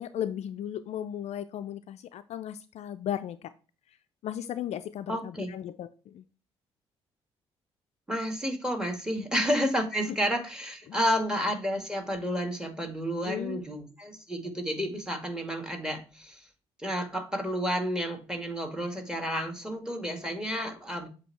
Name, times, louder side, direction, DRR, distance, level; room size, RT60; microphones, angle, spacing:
voice 1, 0.0-3.5 4.2-6.2 9.1-9.3 10.9-11.0 13.2-13.6, left 10 dB, 60° left, 12 dB, 0.4 m, -36 dB
voice 2, 5.1-5.5 8.1-16.5 16.8-21.1, equal, 5° right, 4 dB, 1.9 m, -31 dB
7.6 x 2.8 x 4.6 m, 0.36 s
hypercardioid pair, 45°, 13 cm